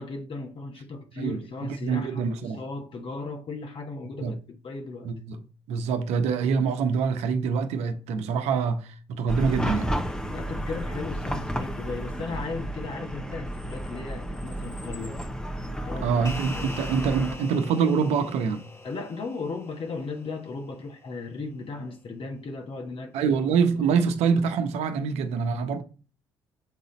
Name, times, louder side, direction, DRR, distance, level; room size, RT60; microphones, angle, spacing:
voice 1, 0.0-4.4 4.6-5.1 10.3-15.2 15.9-16.2 16.5-16.8 18.8-23.4 23.7-24.0, left 3 dB, 50° left, 1.5 m, -36 dB
voice 2, 1.2-2.6 4.2-4.4 5.0-5.4 5.7-9.9 16.0-18.7 23.1-25.8, right 5 dB, 65° right, 0.9 m, -25 dB
Chatter / Car passing by / Traffic noise roadway noise, 9.3-17.4, equal, 5° left, 1.0 m, -32 dB
sound 1, 16.2-20.9, left 2 dB, 25° left, 1.3 m, -43 dB
7.3 x 4.0 x 4.1 m
hypercardioid pair, 50°, 12 cm